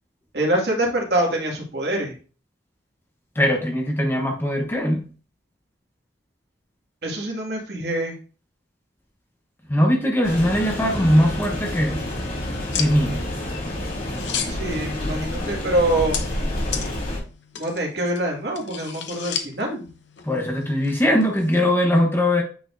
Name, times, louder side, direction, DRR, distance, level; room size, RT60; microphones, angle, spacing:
voice 1, 0.3-2.1 7.0-8.2 14.4-16.2 16.7-16.9 17.6-19.9, right 1 dB, 65° right, 2.1 m, -25 dB
voice 2, 3.4-5.0 9.7-12.0 12.8-13.2 20.3-22.4, equal, 10° left, 1.0 m, -20 dB
sound 1, 10.2-17.2, left 1 dB, 50° left, 2.6 m, -29 dB
sound 2, 12.7-21.6, left 8 dB, 80° left, 0.9 m, -35 dB
9.2 x 4.4 x 2.6 m
head